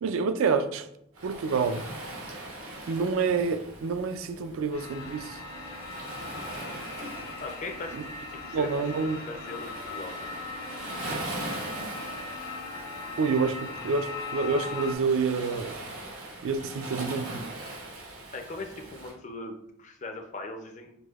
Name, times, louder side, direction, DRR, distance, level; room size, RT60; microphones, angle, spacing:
voice 1, 0.0-0.9 1.2-1.8 2.9-5.4 7.9-8.0 8.5-9.2 13.2-15.8 16.4-17.4, right 4 dB, 70° right, 0.3 m, -28 dB
Waves surf, 1.1-19.1, right 2 dB, 90° right, 1.1 m, -41 dB
sound 1, 4.7-15.0, left 3 dB, 80° left, 0.7 m, -39 dB
voice 2, 7.4-8.0 8.4-10.1 18.3-20.9, left 2 dB, 35° left, 0.4 m, -39 dB
6.0 x 2.6 x 2.4 m
head